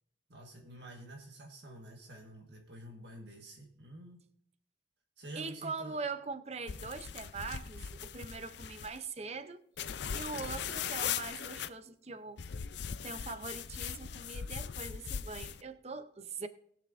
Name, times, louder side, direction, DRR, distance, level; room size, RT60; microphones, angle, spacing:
voice 1, 0.3-4.2 5.2-6.0, right 1 dB, 65° right, 1 dB, 1.6 m, -49 dB
voice 2, 5.4-9.6 10.1-12.4 13.0-16.5, right 4 dB, 35° right, 12 dB, 0.6 m, -42 dB
sound 1, 6.7-9.0 9.8-11.7 12.4-15.6, left 8 dB, 65° left, 0.5 m, -39 dB
20.0 x 6.8 x 2.6 m, 0.68 s
head